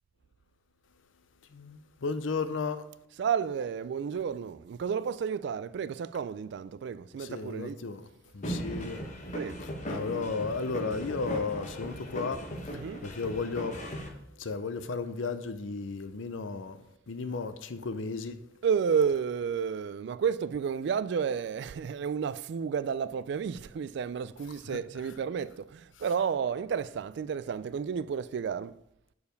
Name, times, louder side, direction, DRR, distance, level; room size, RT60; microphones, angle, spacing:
voice 1, 1.5-2.8 7.2-8.1 8.3-9.0 9.9-12.4 13.0-13.8 14.4-16.8 17.1-18.4 24.7-24.8, left 4 dB, 90° left, 0.6 m, -34 dB
voice 2, 3.2-7.8 9.3-9.6 12.7-13.1 18.6-28.8, right 7 dB, 60° right, 0.3 m, -31 dB
sound 1, 8.4-14.1, equal, 40° left, 1.1 m, -38 dB
6.8 x 4.7 x 5.2 m
head